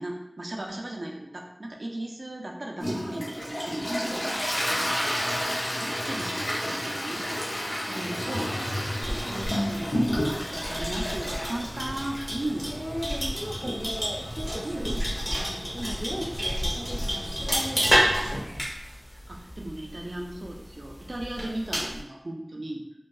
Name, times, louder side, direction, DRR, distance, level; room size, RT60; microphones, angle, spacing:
voice 1, 0.0-4.3 5.7-7.2 7.9-8.6 9.2-12.7 14.6-15.1 19.3-22.8, right 1 dB, 75° right, 0 dB, 0.4 m, -36 dB
Toilet flush, 2.8-18.4, equal, 85° left, 0.6 m, -32 dB
voice 2, 8.0-8.4 9.3-9.5 12.6-18.6, equal, 20° right, -4 dB, 0.6 m, -38 dB
sound 1, 9.0-22.0, equal, 15° left, 0.9 m, -31 dB
2.6 x 2.3 x 2.3 m, 0.91 s
wide cardioid pair, 45°, 0 cm